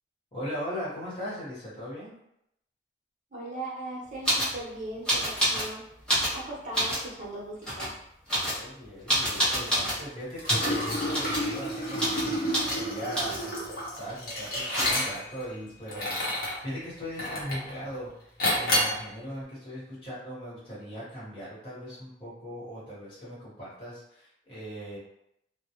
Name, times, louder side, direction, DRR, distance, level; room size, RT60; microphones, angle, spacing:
voice 1, 0.3-2.1 8.5-13.6 13.8-25.0, equal, 30° left, -9 dB, 1.1 m, -39 dB
voice 2, 3.3-5.9 6.3-7.9, right 1 dB, 45° right, -5 dB, 0.8 m, -38 dB
sound 1, 4.2-4.6 5.1-5.7 6.0-7.1 7.6-7.9 8.3-10.0 10.5-10.8 11.1-11.5 12.0-12.3 12.5-12.8 13.1-13.5 14.4-15.2 17.0-17.1 17.3-17.9, right 1 dB, 5° left, 0.6 m, -28 dB
Liquid, 10.4-15.4 15.9-16.6 17.2-17.7 18.4-19.0, left 1 dB, 55° left, 0.7 m, -29 dB
2.2 x 2.0 x 2.8 m, 0.79 s
head